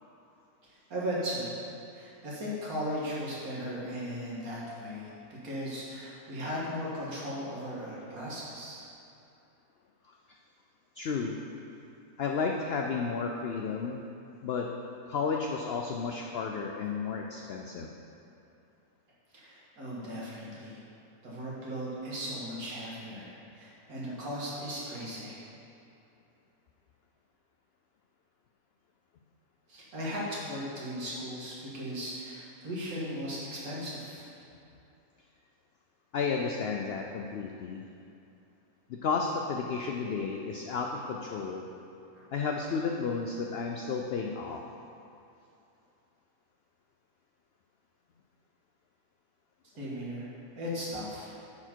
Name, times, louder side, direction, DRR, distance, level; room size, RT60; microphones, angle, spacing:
voice 1, 0.7-1.6 1.9-5.1 5.4-8.8 19.3-20.8 21.2-25.4 29.7-34.3 49.8-50.3 50.6-51.3, equal, 70° right, -7 dB, 2.2 m, -37 dB
voice 2, 11.0-11.4 12.2-14.0 14.4-14.7 15.1-17.9 36.1-37.8 38.9-41.7 42.3-44.6, left 5 dB, 80° left, 1 dB, 0.5 m, -32 dB
9.6 x 4.5 x 4.5 m, 2.8 s
omnidirectional pair, 1.6 m